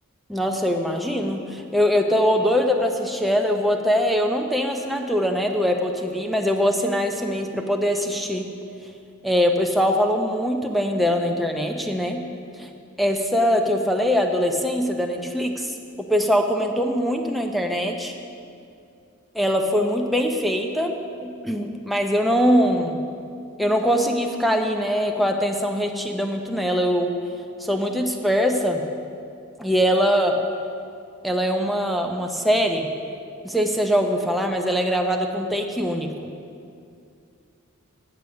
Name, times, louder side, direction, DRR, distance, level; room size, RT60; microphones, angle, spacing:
voice 1, 0.3-8.5 9.2-12.2 12.6-12.7 13.0-15.7 16.1-18.1 19.3-23.0 23.6-27.1 27.6-28.8 29.6-30.4 31.2-32.9 33.4-36.1, equal, ahead, 2 dB, 0.6 m, -22 dB
8.4 x 8.2 x 6.4 m, 2.4 s
head